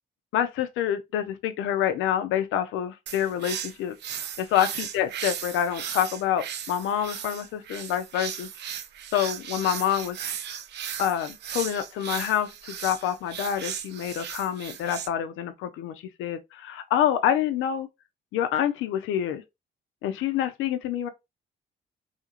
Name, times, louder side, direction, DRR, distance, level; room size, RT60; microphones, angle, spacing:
voice 1, 0.3-3.9 4.4-8.5 9.1-10.2 11.0-17.9 18.3-19.4 20.0-21.1, left 10 dB, 85° left, 0.4 m, -27 dB
sound 1, 3.1-15.1, right 9 dB, 60° right, 0.4 m, -36 dB
2.8 x 2.4 x 2.8 m
cardioid pair, 90°, 20 cm